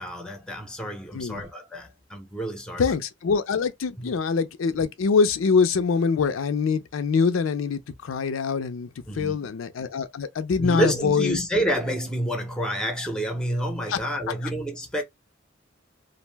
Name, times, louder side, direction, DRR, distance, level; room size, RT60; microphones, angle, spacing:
voice 1, 0.0-2.9 4.0-4.1 9.1-9.5 10.6-15.0, right 1 dB, 5° left, 0.6 m, -29 dB
voice 2, 2.8-11.4 13.9-14.0, left 5 dB, 90° left, 0.4 m, -24 dB
2.5 x 2.0 x 3.3 m
head